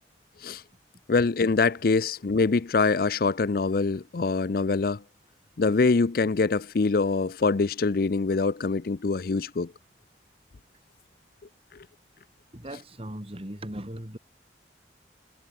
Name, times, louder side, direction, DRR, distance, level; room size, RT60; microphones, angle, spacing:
voice 1, 1.1-5.0 5.6-9.7, left 4 dB, 55° left, 0.5 m, -24 dB
voice 2, 12.5-14.2, right 1 dB, 35° right, 3.0 m, -38 dB
head